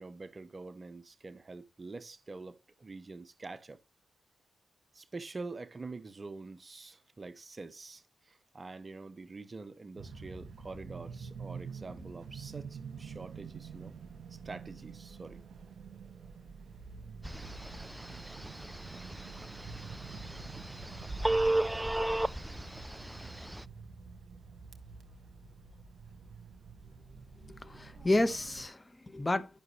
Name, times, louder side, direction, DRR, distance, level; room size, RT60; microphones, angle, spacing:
voice 1, 0.0-3.8 4.9-13.9 14.3-15.4, right 3 dB, 40° right, 0.8 m, -46 dB
sound 1, 9.9-28.6, right 5 dB, 70° right, 1.9 m, -47 dB
Telephone, 17.2-23.6, right 1 dB, 10° right, 0.4 m, -35 dB
voice 2, 27.5-29.6, left 1 dB, 25° left, 1.4 m, -31 dB
10.5 x 6.2 x 3.2 m
supercardioid pair, 50°, 0 cm